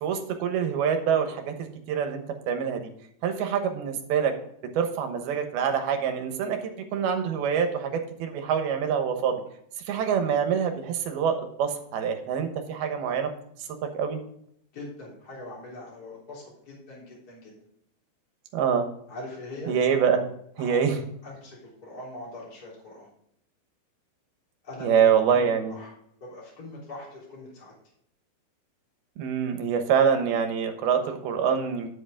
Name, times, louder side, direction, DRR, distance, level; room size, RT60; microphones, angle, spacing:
voice 1, 0.0-2.8 3.2-4.3 4.8-9.4 9.9-13.3 13.9-14.2 18.5-18.9 19.7-20.2 20.6-21.0 24.8-25.7 29.2-31.9, right 7 dB, 70° right, 6 dB, 2.9 m, -25 dB
voice 2, 14.7-17.5 19.1-19.7 20.6-21.0 21.2-23.1 24.6-25.0 25.3-25.9 26.2-27.7, left 2 dB, 25° left, -5 dB, 3.4 m, -42 dB
10.5 x 8.1 x 3.7 m, 0.70 s
omnidirectional pair, 4.8 m